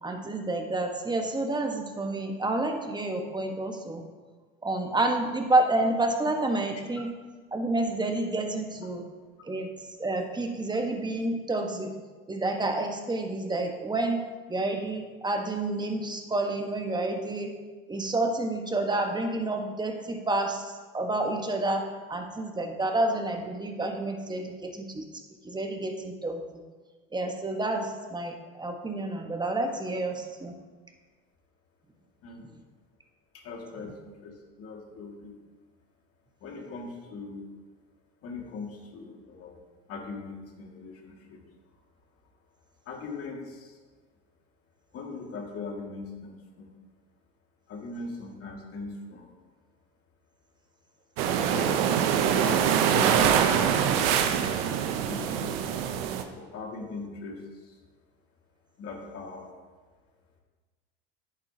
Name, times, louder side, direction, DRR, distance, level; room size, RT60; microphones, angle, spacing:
voice 1, 0.0-4.0 4.6-7.1 7.5-9.1 9.4-11.9 12.3-14.2 14.5-17.6 17.9-25.1 25.4-26.6 27.1-30.5, right 2 dB, 15° right, 4 dB, 1.3 m, -29 dB
voice 2, 33.3-35.3 36.4-37.4 38.2-39.6 39.9-41.4 42.9-43.8 44.9-46.7 47.7-49.3 51.3-52.0 52.3-53.8 54.4-55.5 56.3-57.7 58.8-59.5, left 3 dB, 50° left, 0 dB, 2.2 m, -40 dB
sound 1, 51.2-56.2, right 8 dB, 75° right, 0.9 m, -24 dB
10.5 x 9.2 x 2.9 m, 1.4 s
hypercardioid pair, 75°, 30 cm